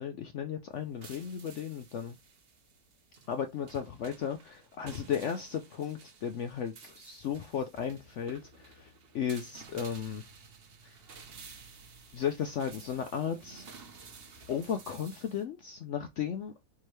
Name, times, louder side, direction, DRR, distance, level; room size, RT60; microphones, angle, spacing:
voice 1, 0.0-2.2 3.3-10.3 10.8-11.0 12.1-13.7 14.5-16.5, left 8 dB, 80° left, 0.6 m, -35 dB
sound 1, 0.7-15.4, right 4 dB, 45° right, 0.9 m, -53 dB
4.6 x 3.6 x 3.2 m
omnidirectional pair, 1.8 m